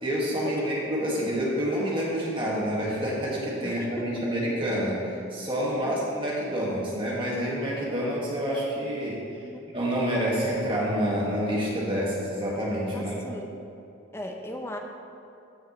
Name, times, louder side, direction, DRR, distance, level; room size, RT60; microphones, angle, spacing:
voice 1, 0.0-9.2 9.7-13.1, equal, 25° right, -5 dB, 1.5 m, -28 dB
voice 2, 3.6-4.3 5.8-6.2 9.4-9.6 12.9-13.6 14.1-14.8, left 1 dB, 10° left, 3 dB, 0.5 m, -38 dB
14.0 x 5.5 x 3.0 m, 2.7 s
head